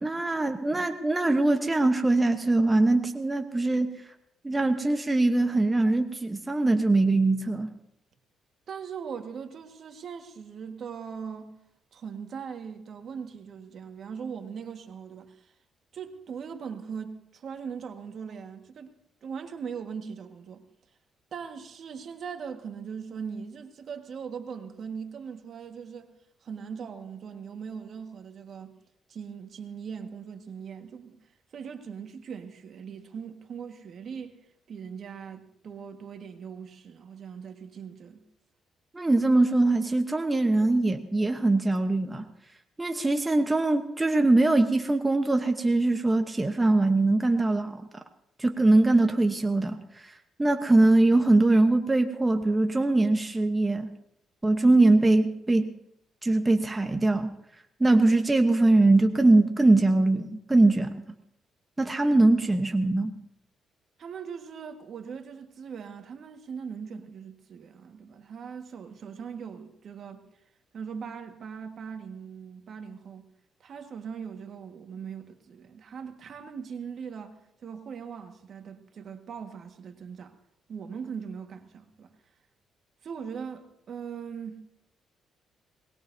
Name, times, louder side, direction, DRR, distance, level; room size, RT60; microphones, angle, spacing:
voice 1, 0.0-4.0 4.4-7.7 38.9-42.3 42.8-47.8 48.4-50.1 50.4-53.9 54.4-55.7 56.2-57.3 57.8-61.0 61.8-63.1, right 2 dB, 15° right, 1.0 m, -22 dB
voice 2, 8.7-11.5 11.9-15.5 15.9-19.0 19.2-20.6 21.3-26.1 26.4-28.7 29.1-31.2 31.5-34.4 34.7-38.2 64.0-70.2 70.7-73.3 73.6-77.3 77.6-80.3 80.7-82.1 83.0-84.6, right 6 dB, 60° right, 1.6 m, -40 dB
22.5 x 19.5 x 2.7 m
cardioid pair, 90°, 0 cm